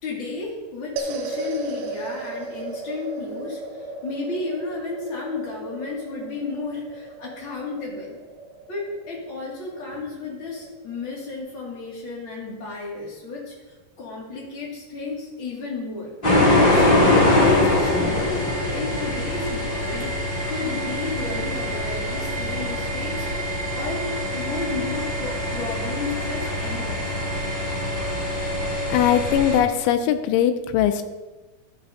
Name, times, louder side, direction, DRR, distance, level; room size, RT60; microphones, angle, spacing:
voice 1, 0.0-8.2 8.7-13.5 14.0-16.1 16.7-20.1 20.5-23.3 23.7-27.2, left 3 dB, 35° left, -4 dB, 2.2 m, -33 dB
sound 1, 1.0-11.4, right 2 dB, 75° right, 3.0 m, -36 dB
sound 2, 16.2-29.6, left 1 dB, 20° left, 1.4 m, -23 dB
voice 2, 28.9-31.0, left 10 dB, 85° left, 9 dB, 3.1 m, -20 dB
12.0 x 11.5 x 2.8 m, 1.2 s
omnidirectional pair, 5.4 m